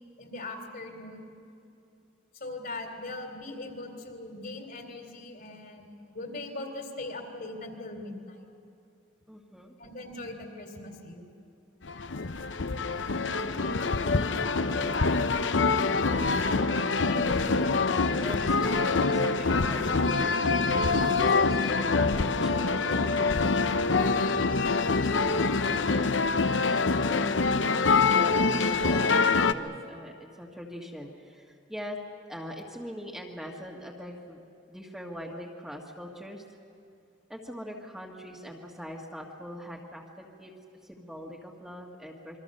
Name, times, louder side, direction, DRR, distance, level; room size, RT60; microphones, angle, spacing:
voice 1, 0.2-1.4 2.3-8.5 9.8-11.3 15.9-16.0 25.0-25.4, left 2 dB, 55° left, 4 dB, 3.4 m, -40 dB
voice 2, 9.3-9.7 13.4-15.1 16.7-17.7 18.2-23.2 26.7-32.0 32.3-34.4 34.7-36.4 37.3-40.5 40.8-42.4, equal, 5° right, -2 dB, 1.8 m, -42 dB
sound 1, 11.8-29.5, left 4 dB, 75° left, 0.8 m, -25 dB
27.0 x 23.5 x 6.7 m, 2.5 s
head